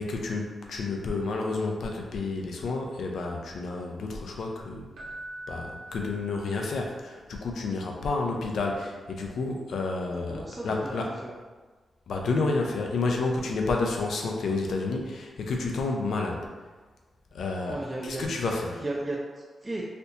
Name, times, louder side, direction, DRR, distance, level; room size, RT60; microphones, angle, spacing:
voice 1, 0.0-4.9 5.5-11.1 12.1-16.5 17.3-17.8 18.0-18.8, left 3 dB, 80° left, 1 dB, 0.5 m, -30 dB
Keyboard (musical), 4.9-6.9 10.2-10.3, right 1 dB, 90° right, 0.8 m, -43 dB
voice 2, 10.3-11.3 17.7-18.2 18.7-19.8, right 2 dB, 20° right, -5 dB, 0.5 m, -35 dB
4.3 x 2.7 x 2.6 m, 1.4 s
cardioid pair, 105°, 0 cm